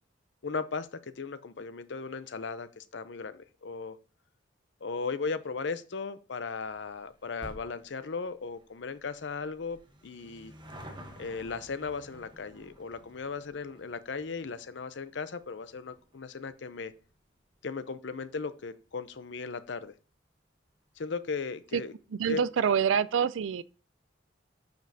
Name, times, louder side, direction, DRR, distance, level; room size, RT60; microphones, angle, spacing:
voice 1, 0.4-4.0 4.8-10.5 11.2-16.9 17.6-19.9 21.0-21.9 22.3-22.4, left 4 dB, 70° left, 0.6 m, -37 dB
sound 1, 6.6-19.4 19.7-19.8 20.7-20.8 21.0-21.1 21.3-21.4, equal, 25° right, 1.0 m, -53 dB
voice 2, 22.1-23.6, right 7 dB, 85° right, 0.4 m, -26 dB
9.2 x 5.2 x 2.7 m
head